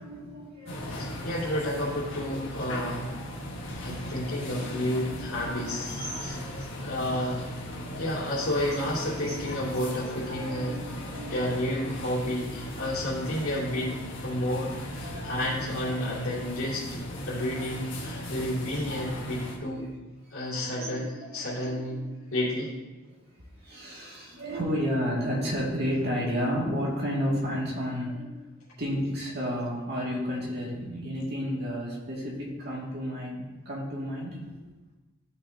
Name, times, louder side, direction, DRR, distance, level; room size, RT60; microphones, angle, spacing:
voice 1, 0.0-1.4 3.4-4.1 4.5-7.1 7.6-8.3 9.3-9.4 10.2-11.6 14.3-14.6 14.9-15.6 17.4-17.5 19.8-20.0 20.2-22.0 22.3-22.5 23.1-28.5 28.8-34.6, equal, 50° right, -4 dB, 2.2 m, -33 dB
sound 1, 0.7-19.6, left 1 dB, 60° left, 1.5 m, -37 dB
voice 2, 0.9-3.1 3.8-6.5 6.8-7.4 8.0-10.7 11.3-13.9 14.2-17.0 17.3-19.9 20.3-22.0 22.3-22.7, left 1 dB, 90° left, -10 dB, 2.5 m, -31 dB
13.0 x 5.6 x 2.8 m, 1.2 s
head